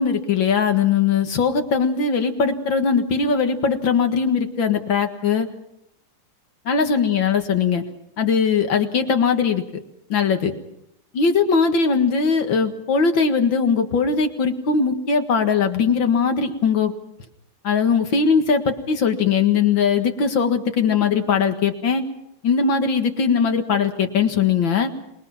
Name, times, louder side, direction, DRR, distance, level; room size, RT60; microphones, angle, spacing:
voice 1, 0.0-5.5 6.7-7.8 8.2-9.6 10.1-10.5 11.1-16.9 17.6-22.0 22.4-24.9, left 5 dB, 80° left, 6 dB, 2.5 m, -20 dB
26.5 x 21.5 x 5.9 m, 0.79 s
omnidirectional pair, 2.1 m